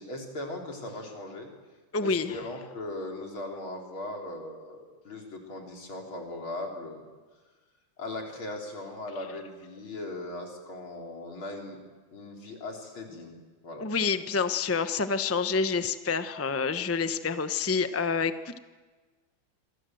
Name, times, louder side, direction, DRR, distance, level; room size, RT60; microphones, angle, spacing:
voice 1, 0.0-1.5 2.0-7.0 8.0-11.8 12.1-13.4 13.6-13.8, left 2 dB, 85° left, 1 dB, 4.9 m, -39 dB
voice 2, 1.9-2.4 13.8-18.6, left 5 dB, 15° left, 10 dB, 0.5 m, -28 dB
28.0 x 23.5 x 7.8 m, 1.3 s
omnidirectional pair, 2.2 m